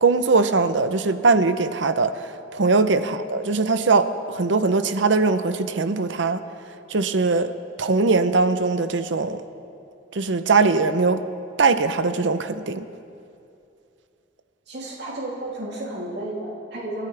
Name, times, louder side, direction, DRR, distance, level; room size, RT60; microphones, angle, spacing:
voice 1, 0.0-6.4 6.9-7.5 7.8-9.4 10.1-11.2 11.6-12.9, right 4 dB, 80° right, 10 dB, 0.8 m, -21 dB
voice 2, 14.7-17.1, right 1 dB, 65° right, -4 dB, 3.1 m, -32 dB
29.5 x 13.0 x 3.4 m, 2.5 s
head